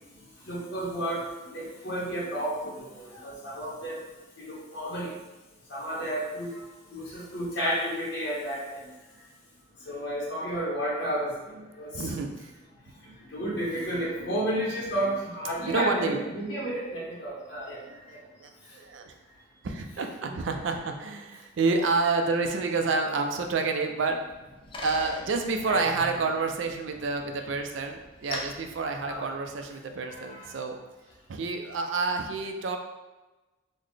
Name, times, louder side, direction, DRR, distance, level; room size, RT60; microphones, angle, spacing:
voice 1, 0.4-1.3 1.5-4.0 4.4-5.1 5.7-6.6 6.9-8.9 9.8-12.1 13.3-18.2 20.2-20.3 25.7-26.1 29.0-29.3 30.0-30.5, equal, 60° left, -5 dB, 1.0 m, -32 dB
voice 2, 11.9-12.5 15.7-16.2 17.6-19.1 19.6-24.2 24.8-30.8 31.3-32.8, right 4 dB, 70° right, 4 dB, 0.4 m, -29 dB
Bicycle, 24.1-29.8, left 2 dB, 25° left, 0.4 m, -43 dB
3.9 x 2.1 x 3.2 m, 1.1 s
head